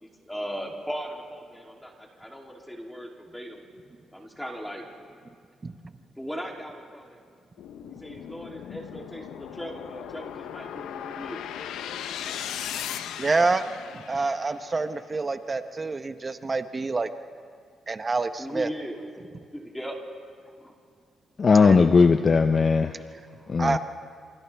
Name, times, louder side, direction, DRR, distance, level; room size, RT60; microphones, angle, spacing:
voice 1, 0.0-3.7 4.1-4.8 6.2-7.2 8.0-11.5 18.4-19.1 19.5-20.0 20.6-20.7 23.4-23.6, equal, 5° left, 0 dB, 3.0 m, -38 dB
sound 1, 7.6-14.8, left 9 dB, 90° left, 0.8 m, -37 dB
voice 2, 13.2-13.6 13.9-17.1 17.9-18.7 21.6-21.8 23.6-23.8, right 3 dB, 30° right, 9 dB, 0.9 m, -27 dB
voice 3, 21.4-22.9 23.5-23.8, left 5 dB, 45° left, 8 dB, 0.7 m, -18 dB
28.0 x 27.0 x 3.5 m, 2.2 s
cardioid pair, 80°, 0 cm